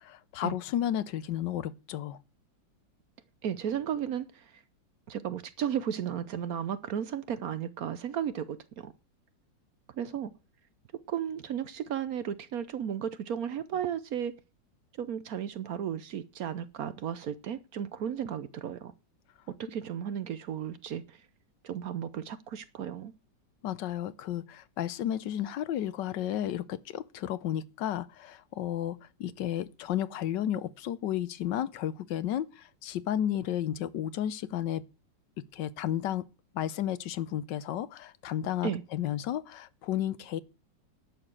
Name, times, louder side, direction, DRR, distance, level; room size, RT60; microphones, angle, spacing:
voice 1, 0.0-2.2 23.6-34.8 35.5-36.2 36.5-40.4, left 11 dB, 75° left, 1.4 m, -33 dB
voice 2, 3.4-4.5 5.1-8.9 9.9-10.3 11.1-14.3 15.0-18.9 19.6-21.2 21.6-23.1 38.6-38.8, right 9 dB, 60° right, 1.1 m, -34 dB
11.0 x 6.8 x 7.4 m
omnidirectional pair, 1.9 m